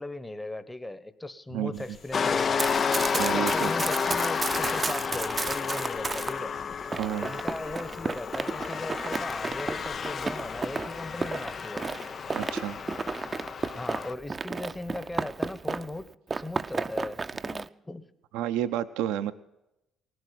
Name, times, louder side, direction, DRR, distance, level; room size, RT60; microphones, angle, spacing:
voice 1, 0.0-2.6 3.1-6.5 7.2-11.9 13.7-16.1 16.3-18.1, left 2 dB, 15° left, 13 dB, 1.2 m, -38 dB
voice 2, 1.5-1.8 3.2-3.7 7.0-7.4 12.3-12.8 18.3-19.3, right 11 dB, 80° right, 11 dB, 0.6 m, -30 dB
sound 1, 1.7-10.5, left 5 dB, 65° left, 2.7 m, -53 dB
sound 2, 2.1-14.1, left 6 dB, 50° left, 0.4 m, -31 dB
Run, 2.4-6.4 6.9-16.0 16.3-17.7, right 4 dB, 35° right, 0.6 m, -33 dB
18.5 x 7.9 x 8.9 m, 0.89 s
hypercardioid pair, 55°, 0 cm